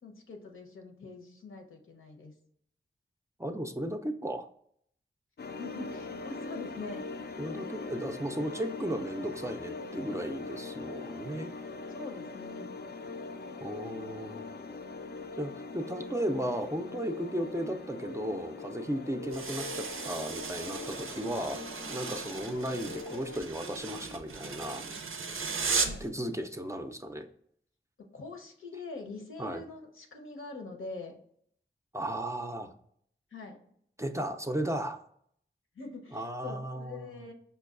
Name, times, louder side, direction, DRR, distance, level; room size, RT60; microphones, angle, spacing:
voice 1, 0.0-2.3 5.6-7.3 11.9-12.7 25.8-26.1 28.1-31.2 33.3-33.6 35.7-37.3, left 3 dB, 80° left, 2 dB, 0.8 m, -44 dB
voice 2, 3.4-4.5 7.4-11.5 13.6-14.5 15.4-21.6 21.9-24.9 26.0-27.3 29.4-29.6 31.9-32.7 34.0-35.0 36.1-37.1, equal, 15° right, 6 dB, 0.4 m, -35 dB
sound 1, 5.4-23.4, left 3 dB, 55° left, 0.4 m, -42 dB
sound 2, 19.3-26.1, right 5 dB, 85° right, 0.5 m, -36 dB
5.3 x 2.2 x 2.4 m, 0.66 s
cardioid pair, 40°, 21 cm